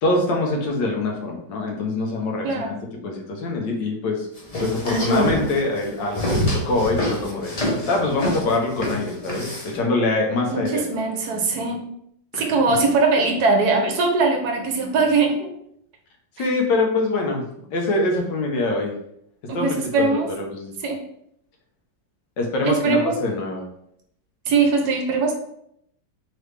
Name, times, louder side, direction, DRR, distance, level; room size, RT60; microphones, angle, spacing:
voice 1, 0.0-2.8 3.0-4.3 4.6-10.8 12.3-12.4 16.4-17.4 17.7-18.9 19.5-20.7 22.4-23.7, left 2 dB, 80° left, 1 dB, 1.5 m, -24 dB
sound 1, 4.4-9.8, equal, 60° left, 0.4 m, -25 dB
voice 2, 10.5-11.8 12.3-15.5 19.5-20.3 20.8-21.0 22.6-23.1 24.5-25.4, right 3 dB, 70° right, 3 dB, 1.1 m, -21 dB
3.8 x 3.3 x 3.2 m, 0.73 s
omnidirectional pair, 1.9 m